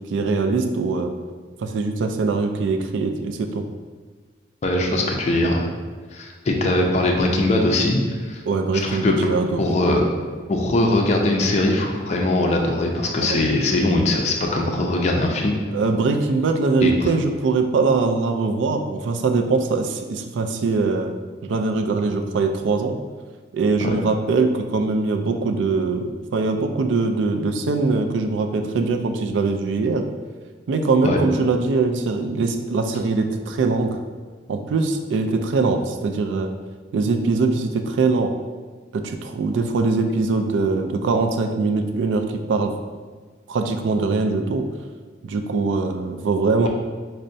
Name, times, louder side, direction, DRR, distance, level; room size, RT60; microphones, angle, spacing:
voice 1, 0.1-1.1 1.6-3.6 8.5-9.7 13.2-13.4 15.7-21.1 21.4-23.0 23.5-30.1 30.7-34.0 34.5-36.5 36.9-38.3 38.9-42.7 43.5-44.7 45.2-46.7, right 3 dB, 80° right, 6 dB, 0.3 m, -22 dB
voice 2, 4.6-5.7 6.1-8.0 8.3-8.4 8.8-9.1 9.6-10.0 10.5-15.6 16.8-17.1 23.8-24.0 31.0-31.2, left 2 dB, 40° left, 1 dB, 0.4 m, -21 dB
5.3 x 2.1 x 2.6 m, 1.5 s
head